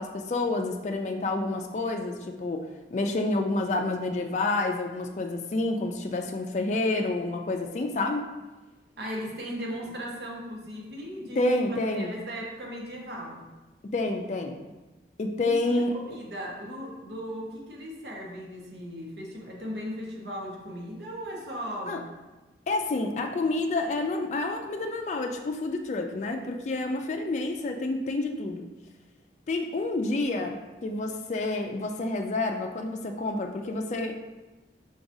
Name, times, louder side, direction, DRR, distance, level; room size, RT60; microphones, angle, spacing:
voice 1, 0.0-2.6 2.9-8.3 11.4-12.1 13.9-14.6 15.2-15.9 21.9-22.0 22.7-28.7 29.5-34.1, left 2 dB, 40° left, 3 dB, 0.4 m, -29 dB
voice 2, 9.0-13.4 15.4-22.0, equal, 65° right, -2 dB, 1.0 m, -37 dB
4.8 x 3.9 x 2.6 m, 1.1 s
head